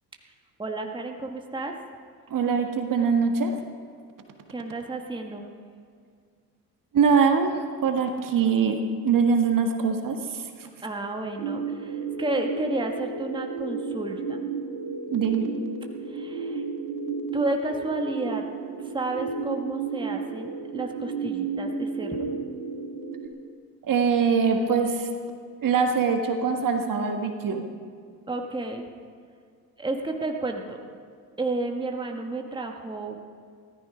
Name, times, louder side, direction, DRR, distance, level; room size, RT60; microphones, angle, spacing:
voice 1, 0.6-1.7 4.5-5.5 10.8-14.4 16.1-16.6 17.3-18.4 18.8-22.3 28.3-28.9 29.8-30.8 31.4-33.2, right 2 dB, 10° right, 2 dB, 1.6 m, -31 dB
voice 2, 2.3-3.5 6.9-10.4 15.1-15.5 23.9-25.1 25.6-27.6, right 5 dB, 40° right, 4 dB, 1.7 m, -23 dB
sound 1, 11.4-23.3, right 5 dB, 75° right, 2.0 m, -33 dB
16.0 x 14.0 x 5.1 m, 2.1 s
hypercardioid pair, 60°, 48 cm